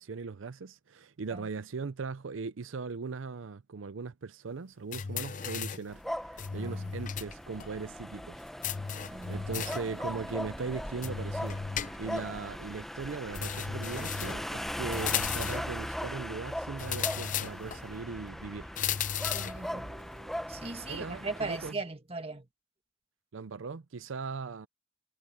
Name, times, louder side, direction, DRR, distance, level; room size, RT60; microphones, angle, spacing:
voice 1, 0.0-8.4 9.3-18.7 20.9-21.8 23.3-24.7, right 4 dB, 90° right, 0.6 m, -39 dB
sound 1, 4.9-5.9 6.4-7.3 7.6-7.7 8.6-9.9 11.0-12.3 13.3-14.5 14.9-15.7 16.8-17.8 18.8-19.6, left 8 dB, 40° left, 0.5 m, -35 dB
sound 2, 5.9-21.7, equal, ahead, 0.7 m, -39 dB
voice 2, 6.5-6.9 9.1-9.5 19.3-22.5, right 3 dB, 30° right, 1.8 m, -39 dB
head